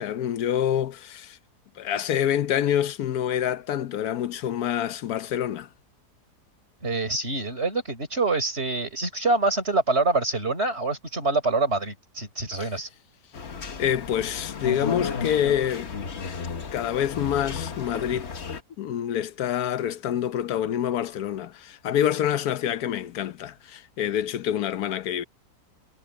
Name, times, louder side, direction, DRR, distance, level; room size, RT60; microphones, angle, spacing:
voice 1, 0.0-1.4 1.8-5.7 12.6-12.7 13.8-15.9 16.7-18.3 18.8-25.2, left 10 dB, 65° left, 1.3 m, -26 dB
voice 2, 6.8-12.9, right 3 dB, 40° right, 5.8 m, -25 dB
sound 1, 13.3-18.6, left 5 dB, 45° left, 1.5 m, -33 dB
omnidirectional pair, 1.8 m